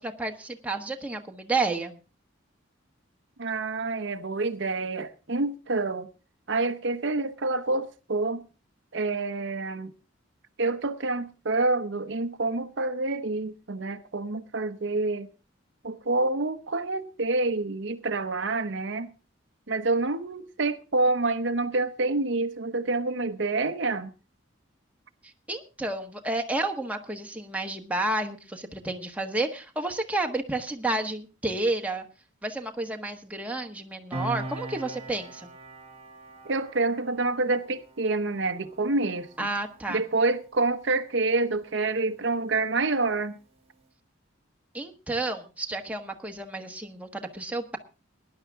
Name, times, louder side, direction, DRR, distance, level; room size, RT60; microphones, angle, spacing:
voice 1, 0.0-1.9 25.5-32.0 32.4-35.5 39.4-40.0 44.7-47.8, right 2 dB, 10° right, 1.4 m, -31 dB
voice 2, 3.4-6.1 6.5-8.4 8.9-9.9 10.6-15.3 15.8-19.1 19.7-24.1 36.4-39.3 39.9-43.4, right 3 dB, 65° right, 0.9 m, -27 dB
Piano, 34.1-41.1 41.4-41.6, right 2 dB, 35° right, 1.6 m, -41 dB
18.5 x 11.0 x 3.6 m
head